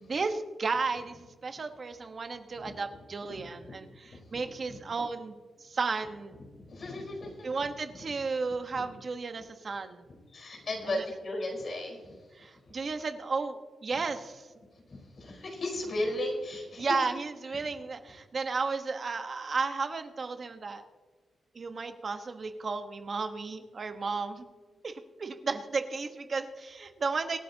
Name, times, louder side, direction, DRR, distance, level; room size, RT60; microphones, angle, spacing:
voice 1, 0.0-6.4 7.4-10.1 10.8-11.0 12.4-14.5 16.8-20.8 21.5-24.4 24.8-27.4, right 4 dB, 50° right, 7 dB, 1.2 m, -34 dB
voice 2, 6.5-7.5 8.5-8.9 10.3-12.8 13.9-14.0 14.9-16.9 17.5-17.6, left 1 dB, 55° left, 0 dB, 4.4 m, -36 dB
25.0 x 8.4 x 2.8 m, 1.3 s
cardioid pair, 70°, 0 cm